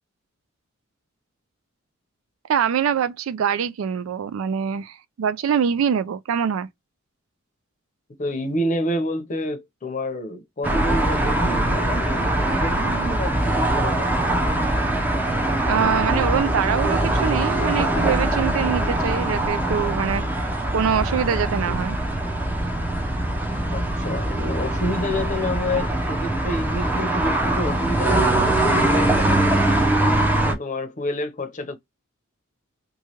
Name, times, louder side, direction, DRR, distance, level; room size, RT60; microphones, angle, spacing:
voice 1, 2.5-6.7 15.7-22.0, right 7 dB, 75° right, 0.4 m, -24 dB
voice 2, 8.2-14.1 23.7-29.8 30.5-31.8, left 1 dB, 40° left, 0.7 m, -29 dB
sound 1, 10.6-30.5, right 1 dB, 10° right, 0.5 m, -22 dB
3.1 x 2.2 x 2.8 m
head